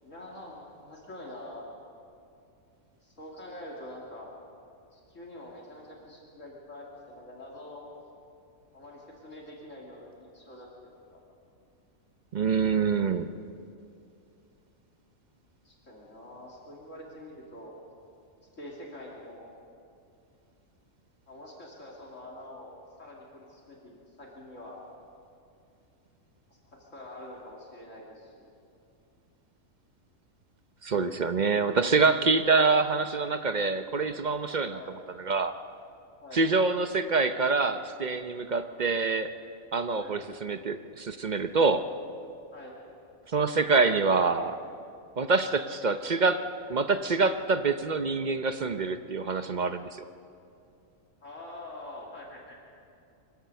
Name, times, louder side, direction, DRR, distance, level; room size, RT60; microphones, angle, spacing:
voice 1, 0.0-1.6 3.0-4.3 4.9-7.9 8.7-11.2 15.6-17.8 18.5-19.5 21.3-22.7 23.0-24.8 26.5-28.5 34.7-34.9 36.2-36.4 39.9-40.2 42.5-42.7 51.2-52.7, left 1 dB, 65° left, -3 dB, 3.2 m, -45 dB
voice 2, 12.3-13.3 30.8-34.8 35.2-35.5 36.3-39.3 39.7-41.8 43.3-44.6 45.2-46.4 46.7-50.0, right 4 dB, 45° right, 9 dB, 0.7 m, -26 dB
24.0 x 16.5 x 6.9 m, 2.5 s
omnidirectional pair, 1.4 m